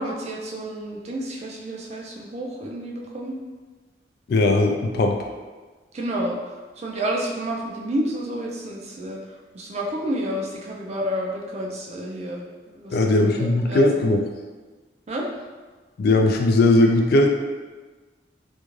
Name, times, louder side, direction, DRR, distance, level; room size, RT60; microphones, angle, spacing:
voice 1, 0.0-3.4 5.9-6.4 6.8-9.2 9.5-13.0 13.4-13.8 15.1-15.3, right 1 dB, 35° right, -1 dB, 0.4 m, -30 dB
voice 2, 4.3-5.2 12.9-14.2 16.0-17.3, left 2 dB, 60° left, 3 dB, 0.3 m, -18 dB
2.5 x 2.3 x 3.0 m, 1.3 s
head